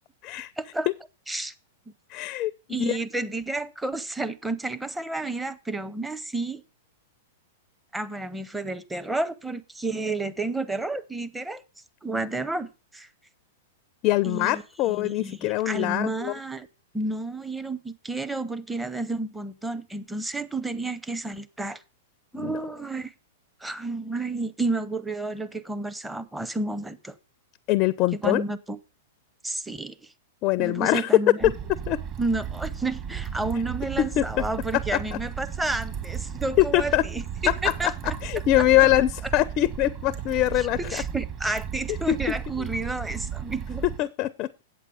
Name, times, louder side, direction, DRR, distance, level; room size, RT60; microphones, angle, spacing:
voice 1, 0.6-0.9 1.3-1.5 2.7-6.6 7.9-11.6 12.0-13.1 14.2-16.7 16.9-21.8 22.3-23.1 23.6-27.1 28.1-28.8 29.4-30.1 30.6-31.5 32.2-38.1 38.6-38.9 40.6-43.8, right 2 dB, 5° right, 0.7 m, -31 dB
voice 2, 2.1-2.5 2.8-3.0 14.0-16.4 22.3-22.6 27.7-28.4 30.4-31.5 31.9-32.0 34.0-34.3 34.9-35.0 36.6-37.0 37.6-37.7 38.0-41.0 41.5-41.6 42.1-42.2 44.0-44.6, left 15 dB, 40° left, 0.4 m, -23 dB
sound 1, 31.4-44.0, right 8 dB, 35° right, 1.7 m, -34 dB
8.4 x 8.2 x 4.8 m
hypercardioid pair, 105°, 0 cm